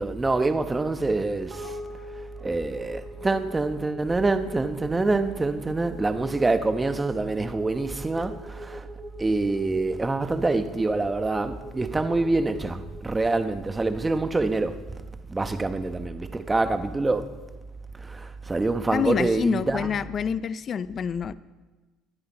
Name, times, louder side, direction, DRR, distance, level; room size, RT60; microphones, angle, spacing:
voice 1, 0.0-1.8 2.4-8.9 9.2-14.8 15.3-17.3 18.0-19.9, right 3 dB, 15° right, 0.9 m, -26 dB
sound 1, 1.5-14.0, equal, 35° right, 4.1 m, -42 dB
voice 2, 18.9-21.3, left 7 dB, 40° left, 0.4 m, -27 dB
22.0 x 9.6 x 4.2 m
cardioid pair, 115°, 0 cm